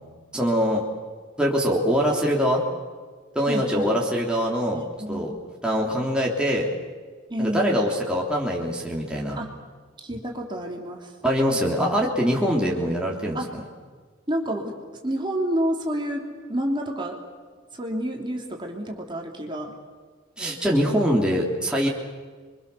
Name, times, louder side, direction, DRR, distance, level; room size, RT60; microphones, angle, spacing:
voice 1, 0.3-0.8 1.4-2.6 3.3-4.8 5.1-5.3 5.6-6.7 7.4-9.4 11.2-13.4 20.4-21.9, equal, 5° right, -2 dB, 3.2 m, -23 dB
voice 2, 3.5-3.9 4.7-5.4 7.3-7.9 9.4-9.5 10.0-11.1 12.4-12.8 13.3-13.5 14.3-17.2 17.7-19.7, right 1 dB, 20° right, 1 dB, 3.4 m, -29 dB
29.0 x 24.5 x 7.1 m, 1.5 s
head